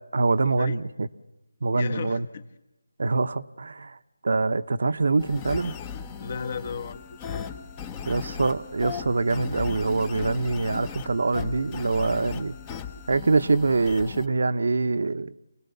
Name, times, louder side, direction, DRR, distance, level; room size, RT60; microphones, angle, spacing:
voice 1, 0.1-1.1 1.6-2.3 3.0-4.0 4.2-5.8 8.0-12.5 13.1-15.3, right 3 dB, 65° right, 0.9 m, -24 dB
voice 2, 1.7-2.4 6.2-7.4, left 5 dB, 40° left, 1.3 m, -35 dB
sound 1, 5.2-14.3, left 7 dB, 15° left, 0.9 m, -37 dB
28.0 x 20.0 x 7.0 m
figure-of-eight pair, 165°, 0 cm